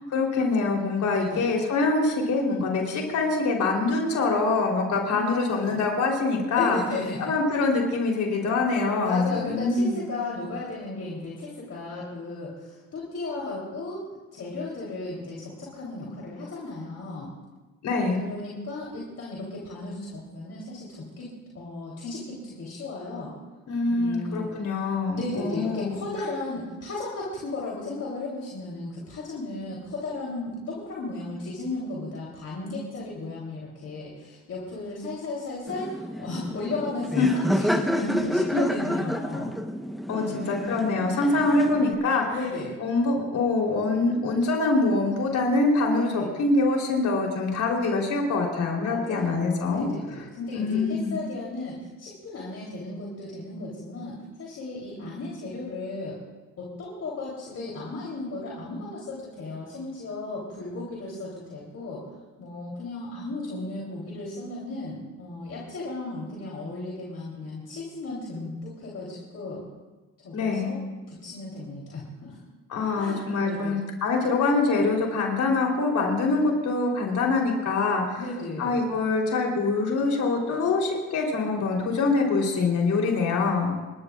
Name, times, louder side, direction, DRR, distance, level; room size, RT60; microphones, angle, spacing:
voice 1, 0.0-6.8 7.2-10.0 17.8-18.3 23.7-26.0 37.2-37.3 38.5-38.6 40.1-42.2 42.8-49.9 50.5-51.1 70.3-70.7 72.7-78.2 78.6-83.7, left 3 dB, 70° left, 0 dB, 3.7 m, -24 dB
voice 2, 1.1-1.4 5.1-5.8 6.5-7.3 9.0-17.3 18.2-21.3 21.6-23.3 23.9-24.5 25.1-37.2 37.5-39.5 40.1-40.7 42.3-42.8 46.1-46.3 48.8-56.2 56.6-62.0 62.4-69.6 70.2-70.8 71.1-72.4 73.0-73.8 78.2-79.0, left 2 dB, 55° left, -5 dB, 3.5 m, -35 dB
Laughter, 35.7-41.9, equal, ahead, 1.0 m, -29 dB
28.0 x 13.0 x 2.5 m, 1.2 s
cardioid pair, 90°, 30 cm